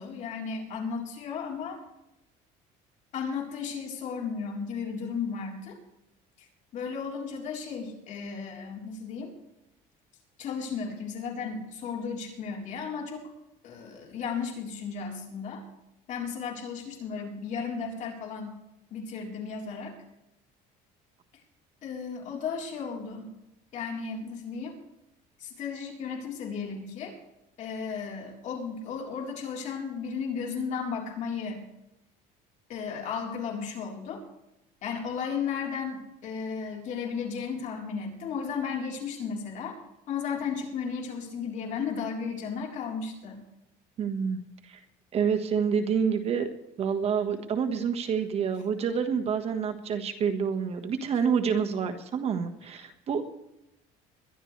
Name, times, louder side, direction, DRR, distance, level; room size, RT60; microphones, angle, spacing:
voice 1, 0.0-1.8 3.1-5.8 6.4-9.3 10.4-13.3 13.6-15.6 16.1-18.6 18.9-20.0 21.8-23.3 23.7-24.8 25.4-27.2 27.6-31.6 32.7-34.2 34.8-39.8 40.1-43.4, left 6 dB, 50° left, 0 dB, 4.0 m, -34 dB
voice 2, 44.0-44.8 45.1-46.5 46.8-53.2, right 6 dB, 40° right, 6 dB, 1.5 m, -28 dB
22.0 x 12.0 x 3.3 m, 0.88 s
cardioid pair, 140°, 15 cm